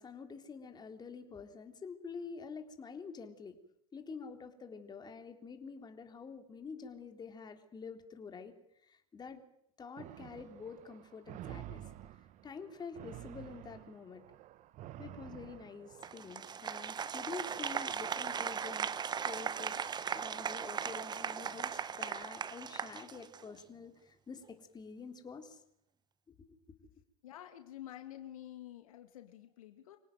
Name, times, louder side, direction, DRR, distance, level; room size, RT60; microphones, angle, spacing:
voice 1, 0.0-3.6 3.9-8.5 8.8-9.4 9.8-12.1 12.4-14.2 15.0-19.0 19.2-19.8 20.1-25.6 26.3-26.6, left 5 dB, 25° left, 6 dB, 3.6 m, -47 dB
sound 1, 10.0-16.4, right 13 dB, 45° right, 1.2 m, -50 dB
Applause, 16.0-23.6, right 7 dB, 25° right, 1.1 m, -38 dB
voice 2, 27.2-30.0, left 12 dB, 75° left, 7 dB, 2.5 m, -49 dB
26.0 x 17.5 x 9.3 m, 0.76 s
hypercardioid pair, 95°, 18 cm